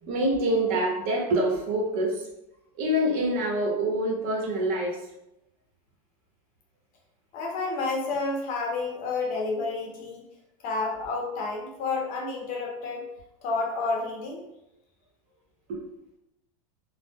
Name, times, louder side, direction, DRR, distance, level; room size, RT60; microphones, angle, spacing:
voice 1, 0.0-2.2 2.8-5.0 15.7-15.8, right 1 dB, 50° right, -2 dB, 1.0 m, -26 dB
voice 2, 7.3-10.2 10.6-13.0 13.4-14.4, left 3 dB, 50° left, -1 dB, 1.0 m, -30 dB
2.9 x 2.0 x 3.5 m, 0.87 s
supercardioid pair, 120°, 19 cm